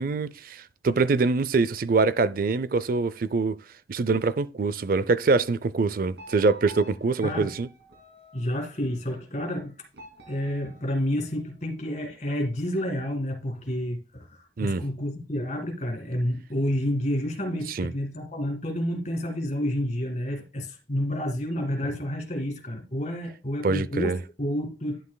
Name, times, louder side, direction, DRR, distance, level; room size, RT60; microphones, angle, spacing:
voice 1, 0.0-3.6 3.9-7.7 14.6-14.8 17.8-17.9 23.6-24.2, right 3 dB, 50° right, 0.4 m, -24 dB
sound 1, 6.2-8.8 9.9-11.7, right 2 dB, 65° right, 2.5 m, -49 dB
voice 2, 8.3-9.8 10.3-14.3 14.6-25.0, left 1 dB, 40° left, 2.0 m, -29 dB
11.5 x 7.5 x 2.2 m
head